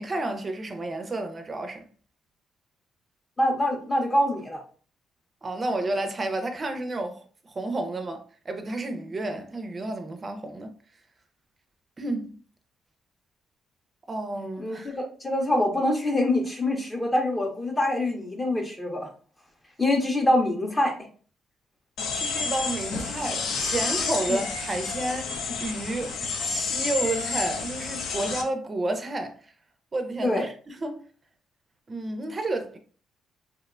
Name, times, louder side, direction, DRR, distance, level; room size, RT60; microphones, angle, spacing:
voice 1, 0.0-1.9 5.4-10.7 12.0-12.3 14.1-15.0 22.1-29.5 29.9-31.0 31.9-32.8, right 2 dB, 35° right, 0.4 m, -31 dB
voice 2, 3.4-4.6 14.6-19.1 19.8-20.9 24.3-24.4 30.2-30.5, left 1 dB, 20° left, 0.5 m, -25 dB
sound 1, 22.0-28.4, left 4 dB, 80° left, 0.4 m, -30 dB
2.8 x 2.1 x 2.3 m
cardioid pair, 90°, 0 cm